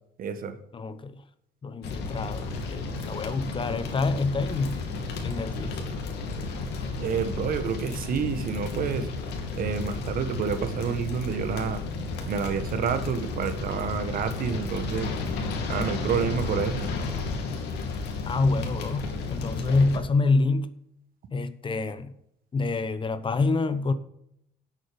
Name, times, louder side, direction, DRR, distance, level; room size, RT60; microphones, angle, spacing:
voice 1, 0.2-0.6 7.0-9.1 9.6-11.8 12.3-15.1 15.7-16.9, right 7 dB, 60° right, 1.6 m, -29 dB
voice 2, 0.7-1.2 1.6-4.9 5.2-5.8 18.2-20.7 21.3-22.1 22.5-23.9, left 3 dB, 30° left, 0.9 m, -27 dB
sound 1, 1.8-20.0, left 3 dB, 85° left, 2.7 m, -33 dB
10.5 x 8.4 x 5.3 m
cardioid pair, 110°, 17 cm